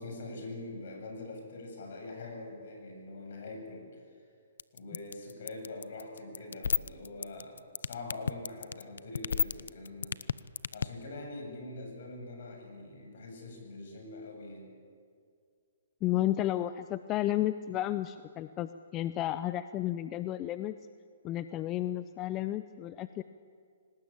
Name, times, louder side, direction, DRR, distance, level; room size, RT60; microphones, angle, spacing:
voice 1, 0.0-4.0 4.7-10.2 10.7-14.7, left 2 dB, 60° left, 3 dB, 7.7 m, -44 dB
sound 1, 4.6-10.8, left 6 dB, 80° left, 0.6 m, -29 dB
voice 2, 16.0-20.7 21.2-23.2, left 14 dB, 25° left, 12 dB, 0.5 m, -32 dB
23.5 x 19.0 x 8.9 m, 2.2 s
hypercardioid pair, 155°, 0 cm